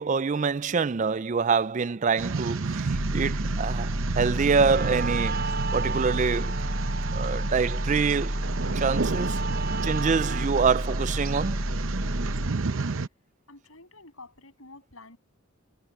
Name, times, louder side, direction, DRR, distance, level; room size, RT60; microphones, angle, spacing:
voice 1, 0.0-6.5 7.1-8.4 8.7-9.4 9.8-11.7, right 5 dB, 35° right, 0.4 m, -26 dB
sound 1, 2.2-13.1, right 4 dB, 65° right, 0.8 m, -32 dB
sound 2, 2.9-12.5, equal, 15° right, 2.6 m, -30 dB
Guitar, 4.7-11.7, right 5 dB, 50° right, 5.5 m, -36 dB
voice 2, 13.5-15.2, left 3 dB, 80° left, 7.4 m, -49 dB
head